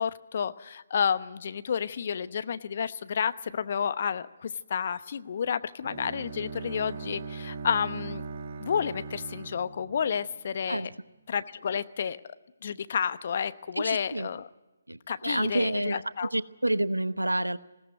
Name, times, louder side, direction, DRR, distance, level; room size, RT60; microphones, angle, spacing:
voice 1, 0.0-8.2 8.6-10.9 11.3-12.2 12.6-14.5 15.1-16.3, left 7 dB, 45° left, 13 dB, 0.9 m, -30 dB
Bowed string instrument, 5.8-10.8, right 4 dB, 40° right, 1.8 m, -40 dB
voice 2, 13.8-14.3 14.9-17.6, right 1 dB, 90° right, 15 dB, 0.9 m, -29 dB
20.5 x 17.0 x 9.3 m, 1.1 s
figure-of-eight pair, 145°, 0 cm